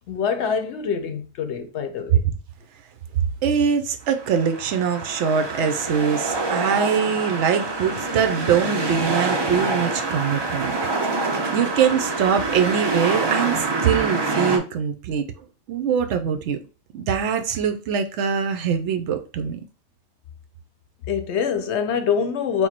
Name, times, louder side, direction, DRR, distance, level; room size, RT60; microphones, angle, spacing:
voice 1, 0.1-2.2 21.1-22.7, left 6 dB, 65° left, 0.8 m, -25 dB
voice 2, 3.4-10.8 11.5-15.3 15.7-16.6 16.9-19.6, right 7 dB, 70° right, 0.9 m, -23 dB
sound 1, 4.1-14.6, right 3 dB, 35° right, 0.4 m, -26 dB
4.5 x 2.1 x 4.2 m
omnidirectional pair, 1.3 m